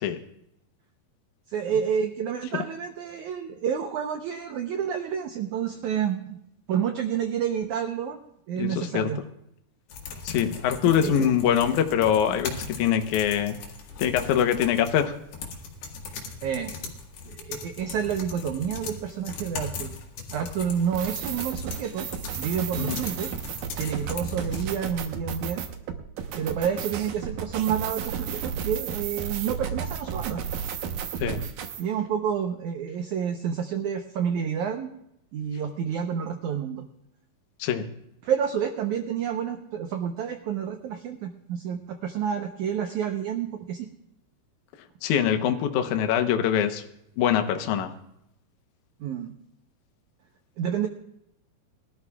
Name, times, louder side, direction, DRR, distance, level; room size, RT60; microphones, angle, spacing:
voice 1, 1.5-6.4 6.7-8.2 8.5-9.2 10.8-11.3 16.4-16.7 17.3-19.9 20.3-23.3 23.8-25.6 26.4-30.4 31.8-34.9 35.3-36.8 38.2-43.9 49.0-49.3 50.6-50.9, right 8 dB, 85° right, 5 dB, 1.7 m, -29 dB
voice 2, 8.6-9.1 10.2-13.6 14.0-15.1 22.8-23.0 31.2-31.4 37.6-37.9 45.0-46.8 47.2-47.9, left 9 dB, 70° left, 7 dB, 1.9 m, -24 dB
sound 1, 9.9-24.7, left 4 dB, 85° left, 3.9 m, -39 dB
sound 2, 20.9-31.8, right 7 dB, 70° right, 2.4 m, -33 dB
22.0 x 12.5 x 2.4 m, 0.79 s
omnidirectional pair, 4.5 m